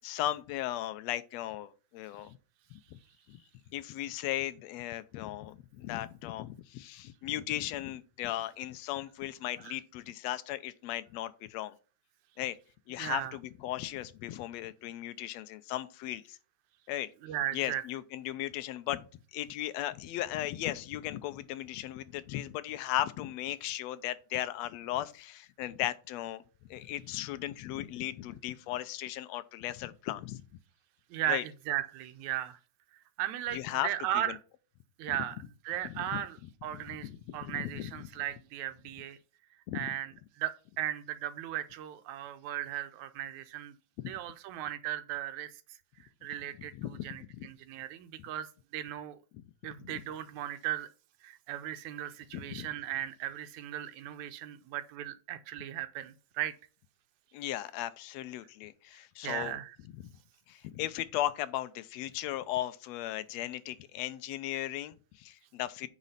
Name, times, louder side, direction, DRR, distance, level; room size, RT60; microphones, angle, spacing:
voice 1, 0.0-2.4 2.9-3.0 3.3-3.4 3.7-11.8 12.4-12.6 12.9-16.4 16.9-17.1 17.5-19.0 19.3-26.4 26.7-30.4 31.3-31.4 33.5-33.9 34.2-34.4 35.1-35.2 35.9-36.2 36.7-38.1 39.7-39.9 44.0-44.1 46.8-47.1 47.4-47.5 49.8-49.9 52.3-52.7 57.3-59.6 59.9-60.1 60.5-65.9, left 14 dB, 75° left, 1.7 m, -36 dB
voice 2, 13.0-13.4 17.2-17.8 31.1-32.6 33.2-34.4 35.0-35.4 35.6-39.2 39.7-40.1 40.4-43.7 44.1-45.5 46.0-48.5 48.7-49.2 49.6-50.9 51.2-56.5 59.2-59.8, right 12 dB, 85° right, 2.1 m, -36 dB
9.0 x 4.2 x 5.6 m
omnidirectional pair, 3.3 m